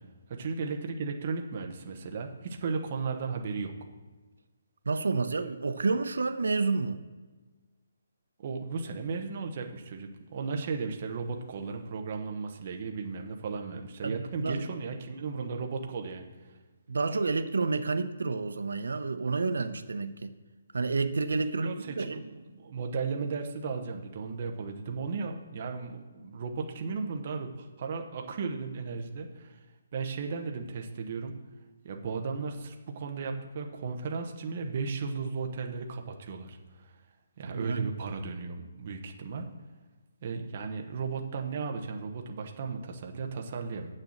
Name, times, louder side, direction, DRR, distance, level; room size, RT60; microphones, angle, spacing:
voice 1, 0.3-3.7 8.4-16.2 21.6-29.6 29.9-31.3 31.8-37.0 37.4-39.5 40.2-43.9, right 4 dB, 30° right, 3 dB, 0.9 m, -35 dB
voice 2, 4.9-7.0 14.0-14.7 16.9-20.3 20.7-22.2 37.4-37.9, right 4 dB, 80° right, 10 dB, 0.7 m, -30 dB
7.9 x 6.6 x 7.3 m, 1.3 s
hypercardioid pair, 180°, 0 cm